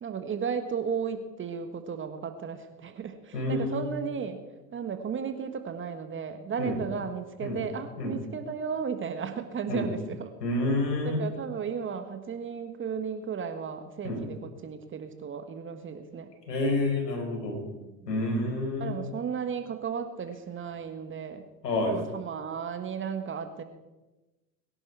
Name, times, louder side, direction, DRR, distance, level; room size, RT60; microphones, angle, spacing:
voice 1, 0.0-4.4 4.7-10.3 11.0-16.3 17.8-18.2 18.8-21.4 21.9-23.6, right 6 dB, 25° right, 8 dB, 1.5 m, -34 dB
voice 2, 3.3-3.8 6.6-6.8 7.4-7.6 8.0-8.1 9.7-9.8 10.4-11.2 14.0-14.2 16.5-17.6 18.1-18.9 21.6-22.0, left 2 dB, 75° left, 1 dB, 5.1 m, -28 dB
22.0 x 11.0 x 4.7 m, 1.1 s
hypercardioid pair, 90°, 48 cm